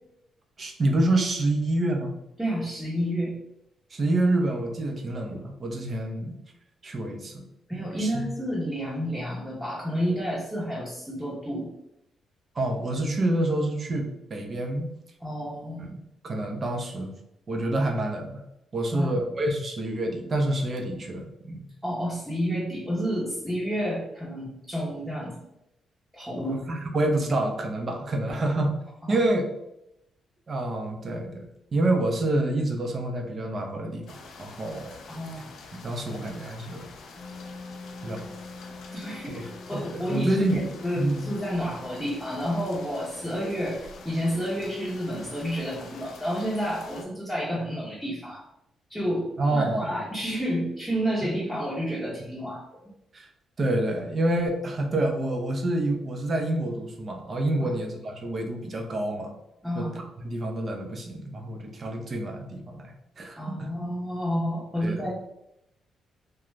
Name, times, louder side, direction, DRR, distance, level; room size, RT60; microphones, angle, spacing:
voice 1, 0.6-2.1 3.9-6.4 6.8-7.4 7.7-8.3 12.6-14.9 15.8-17.1 17.5-18.4 18.7-21.7 26.4-28.7 29.1-29.4 30.5-34.9 35.8-36.9 38.0-38.3 39.3-39.4 39.7-40.6 41.0-41.2 49.4-49.9 53.1-53.3 53.6-59.3 59.7-63.7 64.8-65.0, right 1 dB, 45° right, 3 dB, 0.6 m, -27 dB
voice 2, 2.4-3.3 7.7-11.7 15.2-15.9 18.9-19.2 21.8-25.4 26.1-26.6 29.0-29.2 35.1-35.4 38.9-48.4 48.9-52.9 57.6-57.8 59.6-60.0 63.4-65.1, equal, ahead, -7 dB, 0.8 m, -30 dB
sound 1, 34.1-47.1, left 4 dB, 75° left, 0.4 m, -47 dB
sound 2, 37.2-47.7, left 3 dB, 30° left, 0.8 m, -47 dB
2.4 x 2.2 x 3.1 m, 0.84 s
cardioid pair, 85°, 0 cm